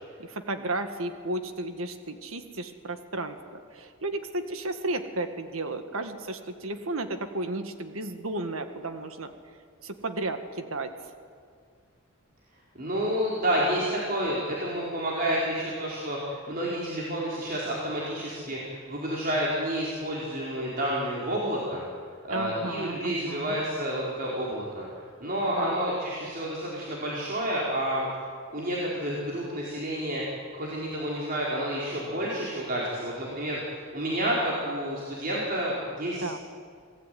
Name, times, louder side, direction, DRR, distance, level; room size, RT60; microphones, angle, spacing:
voice 1, 0.2-3.4 3.7-9.3 9.8-10.9 22.3-23.6 25.6-25.8 36.2-36.4, right 2 dB, 70° right, 8 dB, 1.9 m, -33 dB
voice 2, 12.8-21.8 22.3-24.8 25.2-28.1 28.5-30.2 30.5-36.3, equal, 45° right, -5 dB, 4.7 m, -30 dB
27.5 x 19.0 x 9.4 m, 2.1 s
head